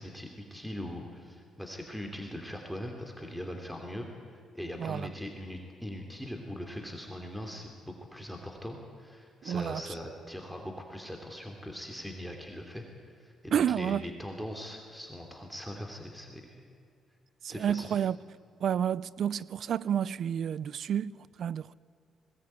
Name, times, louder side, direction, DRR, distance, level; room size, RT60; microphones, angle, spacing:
voice 1, 0.0-12.8 13.1-16.6 17.5-18.0, equal, ahead, 2.9 m, -41 dB
voice 2, 4.8-5.1 9.4-9.8 13.5-14.1 17.4-18.2 18.6-21.1 21.4-21.7, right 9 dB, 65° right, 0.5 m, -30 dB
21.0 x 18.5 x 9.4 m
cardioid pair, 90°, 0 cm